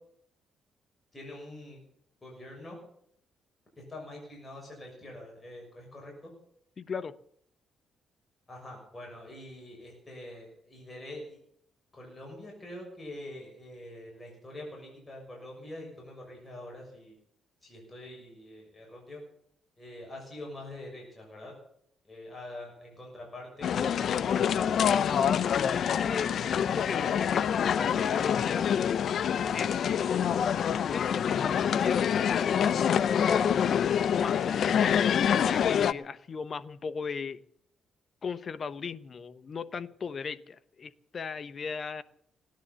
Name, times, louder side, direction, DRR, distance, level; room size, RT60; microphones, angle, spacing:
voice 1, 1.1-1.8 2.2-2.8 3.8-6.3 8.5-11.4 11.9-17.1 17.6-19.2 19.8-21.5 22.0-24.7, left 1 dB, 20° left, -1 dB, 6.5 m, -45 dB
voice 2, 6.8-7.1 25.7-28.7 29.0-29.8 30.9-37.4 38.2-42.0, left 5 dB, 45° left, 15 dB, 0.9 m, -37 dB
sound 1, 23.6-35.9, left 8 dB, 60° left, 0.6 m, -26 dB
18.0 x 10.5 x 6.9 m, 0.69 s
cardioid pair, 90°, 0 cm